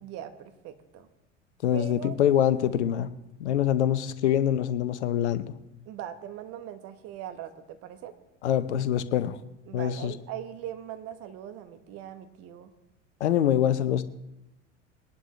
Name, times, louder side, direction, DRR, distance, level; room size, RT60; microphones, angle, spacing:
voice 1, 0.0-1.1 1.7-2.1 5.9-8.1 9.7-12.7 13.3-13.4, right 10 dB, 40° right, 9 dB, 1.4 m, -40 dB
voice 2, 1.6-3.1 3.4-5.4 8.4-9.4 9.7-10.1 13.2-14.1, left 10 dB, 65° left, 13 dB, 0.8 m, -24 dB
21.5 x 11.0 x 3.3 m, 0.91 s
figure-of-eight pair, 80°, 37 cm